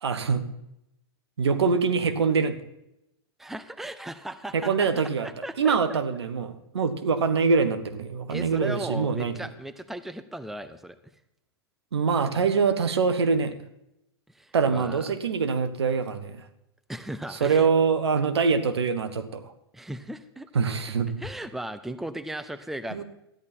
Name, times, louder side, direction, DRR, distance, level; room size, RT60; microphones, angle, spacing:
voice 1, 0.0-0.4 1.4-2.6 4.5-5.3 5.6-9.5 11.9-13.5 14.5-16.4 17.3-19.4 20.5-21.1 22.9-23.0, right 5 dB, 80° right, 10 dB, 1.4 m, -24 dB
voice 2, 3.4-4.9 5.2-6.0 8.3-11.0 14.3-15.0 16.9-17.7 19.7-20.5 21.2-23.0, right 1 dB, ahead, 12 dB, 0.7 m, -36 dB
13.5 x 10.5 x 4.4 m, 0.84 s
hypercardioid pair, 115°, 14 cm